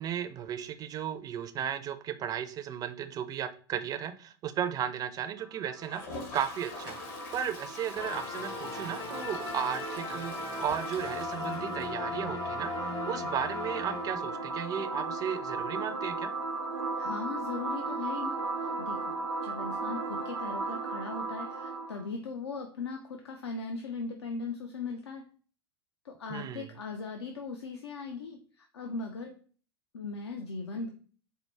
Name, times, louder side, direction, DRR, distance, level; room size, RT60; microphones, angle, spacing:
voice 1, 0.0-7.0 7.3-16.3 26.3-26.7, right 9 dB, 25° right, 11 dB, 0.4 m, -35 dB
sound 1, 5.4-22.0, right 3 dB, 90° right, 0.5 m, -37 dB
Toilet flush, 5.8-12.5 12.8-12.9 13.1-13.2 13.5-13.6 16.1-16.2 17.5-17.6, left 3 dB, 55° left, 0.9 m, -45 dB
sound 2, 8.0-14.5, left 5 dB, 30° left, 0.6 m, -39 dB
voice 2, 17.0-19.1 19.4-25.2 26.0-29.3 29.9-30.9, left 4 dB, 75° left, 3 dB, 0.5 m, -39 dB
4.5 x 2.0 x 3.2 m, 0.42 s
figure-of-eight pair, 85°, 14 cm